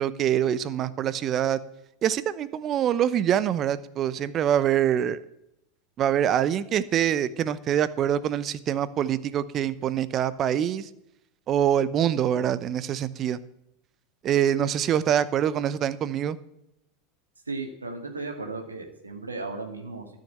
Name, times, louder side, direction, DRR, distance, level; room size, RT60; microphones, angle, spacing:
voice 1, 0.0-1.6 2.0-5.2 6.0-10.9 11.5-13.4 14.2-16.4, right 10 dB, 40° right, 16 dB, 0.8 m, -25 dB
voice 2, 17.5-20.2, right 3 dB, 90° right, 3 dB, 2.0 m, -35 dB
13.0 x 6.6 x 8.8 m, 0.83 s
figure-of-eight pair, 85°, 0 cm